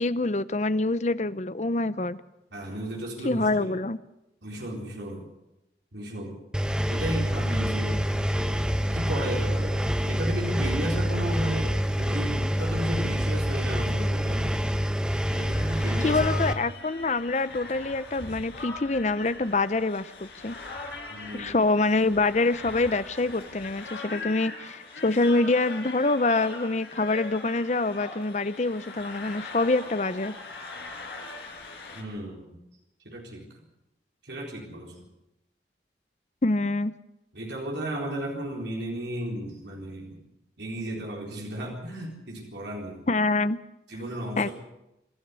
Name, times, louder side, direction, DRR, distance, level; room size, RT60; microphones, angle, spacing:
voice 1, 0.0-2.2 3.2-4.0 16.0-20.6 21.3-30.3 36.4-36.9 43.1-43.6 44.4-44.5, left 2 dB, 40° left, 15 dB, 0.7 m, -25 dB
voice 2, 2.5-3.7 4.4-5.3 5.9-6.4 6.9-8.0 8.9-9.8 10.1-14.5 15.3-16.3 21.1-21.6 31.9-32.6 33.0-33.6 34.2-35.0 37.3-40.2 40.6-43.1 43.9-44.5, right 1 dB, 75° right, -1 dB, 4.1 m, -34 dB
Engine, 6.5-16.5, equal, 5° right, 0.8 m, -26 dB
sound 1, 15.2-32.0, left 3 dB, 65° left, 5.2 m, -41 dB
26.0 x 12.0 x 8.2 m, 0.90 s
head